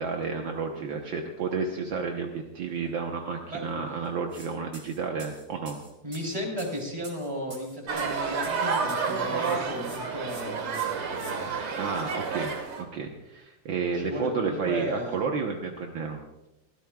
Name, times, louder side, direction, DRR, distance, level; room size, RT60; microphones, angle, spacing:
voice 1, 0.0-5.8 11.8-12.5 12.8-16.3, right 5 dB, 65° right, 2 dB, 1.7 m, -31 dB
sound 1, 4.3-4.5 4.7-9.1 9.4-10.0 10.3-10.4 10.7-11.3, right 1 dB, 40° right, 3.0 m, -47 dB
voice 2, 6.0-11.5 13.9-15.2, equal, 15° right, -1 dB, 3.4 m, -35 dB
sound 2, 7.9-12.8, right 5 dB, 85° right, 2.5 m, -30 dB
22.5 x 15.5 x 2.3 m, 0.95 s
omnidirectional pair, 2.3 m